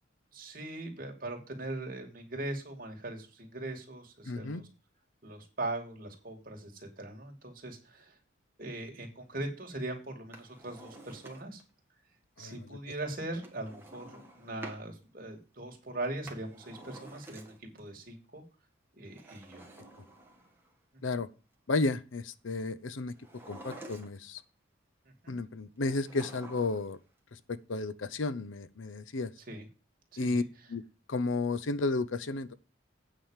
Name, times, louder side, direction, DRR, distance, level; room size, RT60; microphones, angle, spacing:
voice 1, 0.3-4.6 5.2-8.1 8.6-11.6 12.4-18.4 18.9-19.6 20.9-21.0 25.2-25.4 29.5-29.6 30.1-30.4, right 2 dB, 45° right, 2.7 m, -40 dB
voice 2, 4.2-4.6 12.4-12.7 21.0-21.3 21.7-23.1 23.5-24.4 25.3-27.0 27.3-29.3 30.2-30.4 30.7-30.8 31.1-32.5, left 3 dB, 80° left, 0.7 m, -32 dB
Drawer open or close, 10.2-11.7 13.4-14.9 16.0-17.8 19.1-20.7 23.2-24.4 25.8-27.0 27.2-27.3, right 1 dB, 10° right, 1.8 m, -50 dB
9.0 x 5.0 x 7.3 m
head